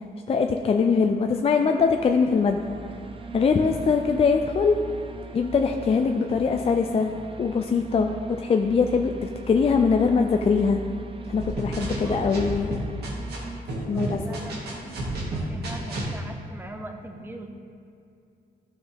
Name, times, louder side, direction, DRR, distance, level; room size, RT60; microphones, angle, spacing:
voice 1, 0.3-2.7 3.3-4.8 5.3-7.1 7.4-8.1 8.4-10.8 11.3-12.8 13.9-14.4, left 5 dB, 40° left, 4 dB, 0.4 m, -22 dB
sound 1, 1.6-13.6, right 3 dB, 35° right, 0.5 m, -39 dB
sound 2, 11.4-13.4 13.7-16.1, right 1 dB, 85° right, 2.1 m, -31 dB
voice 2, 13.9-14.7 15.3-17.5, right 1 dB, 15° right, 4 dB, 0.8 m, -41 dB
13.5 x 6.1 x 3.6 m, 2.5 s
wide cardioid pair, 140°, 16 cm